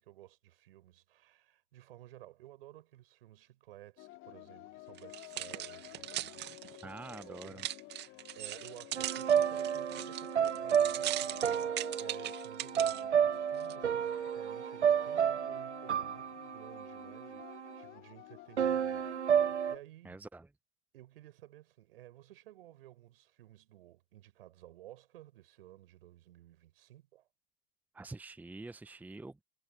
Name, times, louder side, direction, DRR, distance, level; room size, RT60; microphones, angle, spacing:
voice 1, 0.0-7.7 7.9-20.2 20.9-27.3, right 14 dB, 60° right, 6.9 m, -55 dB
sound 1, 4.0-19.8, left 20 dB, 40° left, 3.2 m, -52 dB
sound 2, 5.0-13.0 13.6-13.7, right 14 dB, 30° right, 2.5 m, -40 dB
voice 2, 6.8-7.7 20.0-20.5 27.9-29.4, right 2 dB, 5° right, 1.2 m, -46 dB
sound 3, 9.0-17.8 18.6-19.7, right 8 dB, 85° right, 0.5 m, -31 dB
figure-of-eight pair, 95°, 33 cm